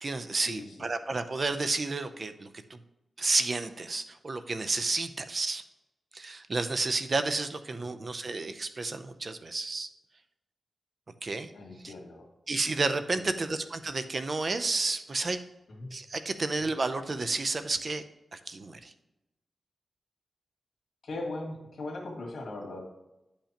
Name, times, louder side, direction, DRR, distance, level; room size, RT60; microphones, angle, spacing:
voice 1, 0.0-2.8 3.2-5.6 6.1-9.9 11.2-11.5 11.8-11.9 12.5-15.4 15.9-18.0 18.3-18.9, right 3 dB, 45° right, 9 dB, 0.6 m, -31 dB
voice 2, 11.5-12.3 13.3-13.5 15.7-15.9 21.0-22.8, left 2 dB, 80° left, 0 dB, 2.0 m, -39 dB
9.9 x 5.7 x 2.9 m, 0.93 s
wide cardioid pair, 95°, 0 cm